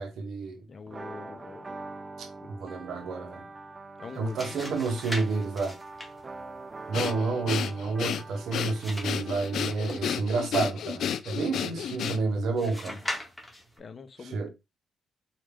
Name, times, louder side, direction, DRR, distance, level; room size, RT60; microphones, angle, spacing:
voice 1, 0.0-0.6 2.2-3.4 4.1-5.8 6.9-13.0 14.2-14.5, right 3 dB, 70° right, 0.8 m, -30 dB
voice 2, 0.7-1.7 2.4-2.5 4.0-4.7 12.6-13.0 13.8-14.5, left 5 dB, 40° left, 0.7 m, -44 dB
sound 1, 0.9-10.5, right 3 dB, 25° right, 0.5 m, -44 dB
sound 2, 4.0-10.4 12.6-13.8, left 1 dB, 5° left, 1.6 m, -41 dB
Breathing, 6.9-12.5, left 8 dB, 70° left, 0.3 m, -32 dB
4.4 x 2.4 x 3.5 m
cardioid pair, 90°, 0 cm